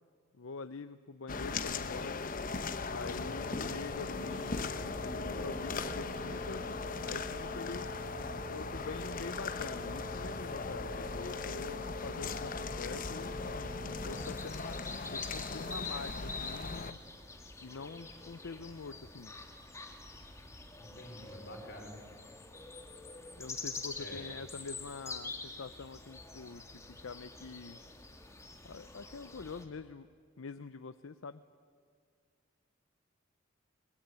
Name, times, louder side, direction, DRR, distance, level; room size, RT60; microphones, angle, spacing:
voice 1, 0.3-2.3 2.9-4.7 5.1-6.7 7.0-7.9 8.5-14.8 15.1-17.0 17.6-19.4 23.4-27.8 28.6-30.1 30.4-31.4, left 4 dB, 80° left, 12 dB, 0.6 m, -45 dB
sound 1, 1.3-16.9, left 4 dB, 40° left, 0.9 m, -39 dB
sound 2, 3.0-14.7, left 1 dB, 75° right, 5.4 m, -46 dB
sound 3, 14.0-29.6, left 3 dB, 15° left, 2.0 m, -46 dB
voice 2, 20.8-21.9 24.0-24.3, left 1 dB, 55° left, 2 dB, 5.2 m, -48 dB
23.0 x 22.0 x 9.8 m, 2.1 s
head